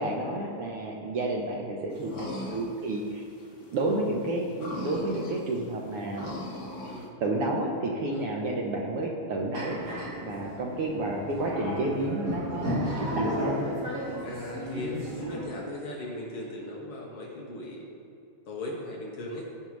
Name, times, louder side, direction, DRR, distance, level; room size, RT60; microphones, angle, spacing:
voice 1, 0.0-3.2 3.7-6.4 7.2-9.8 10.2-13.6, right 2 dB, 70° right, 0 dB, 1.4 m, -30 dB
sound 1, 1.9-3.5 3.7-3.8 4.3-7.0, left 1 dB, 85° left, 3.5 m, -39 dB
voice 2, 3.6-4.0 6.9-7.1 8.1-8.3 12.5-12.7 14.2-17.9 18.5-19.5, left 1 dB, 60° left, -2 dB, 1.8 m, -38 dB
sound 2, 9.5-15.4, equal, 35° right, 1.6 m, -33 dB
15.5 x 5.5 x 3.1 m, 2.7 s
omnidirectional pair, 3.3 m